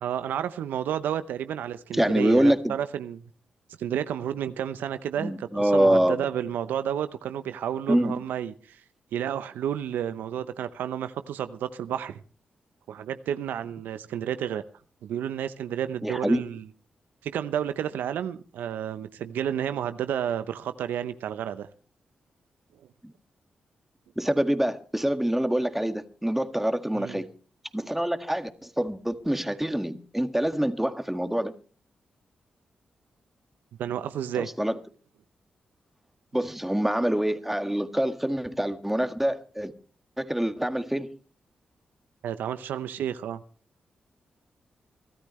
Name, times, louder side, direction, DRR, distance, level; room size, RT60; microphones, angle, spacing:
voice 1, 0.0-3.2 3.8-8.8 9.1-12.2 12.9-14.6 15.0-16.6 17.2-21.7 27.0-27.2 33.8-34.5 42.2-43.4, right 9 dB, 80° right, 0.7 m, -31 dB
voice 2, 2.0-2.7 5.2-6.3 7.9-8.2 16.0-16.4 24.2-27.3 27.7-31.5 34.4-34.7 36.3-39.7 40.2-41.2, right 1 dB, 5° right, 1.8 m, -25 dB
23.5 x 13.0 x 3.2 m
supercardioid pair, 40°, 3 cm